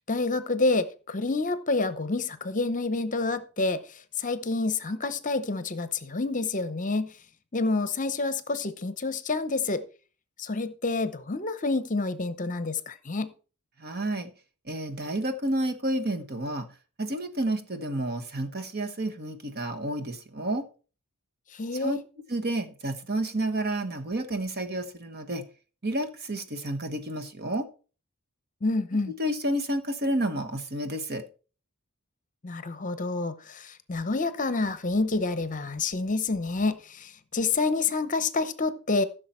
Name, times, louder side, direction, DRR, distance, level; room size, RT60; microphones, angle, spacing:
voice 1, 0.1-7.1 7.5-9.8 10.4-13.3 21.5-22.0 28.6-29.1 32.4-39.0, left 3 dB, 35° left, 0.8 m, -28 dB
voice 2, 13.8-14.3 14.7-16.7 17.0-20.7 21.8-22.0 22.3-25.4 25.8-27.7 29.2-31.2, right 1 dB, 45° right, 1.3 m, -30 dB
15.0 x 6.6 x 4.4 m
head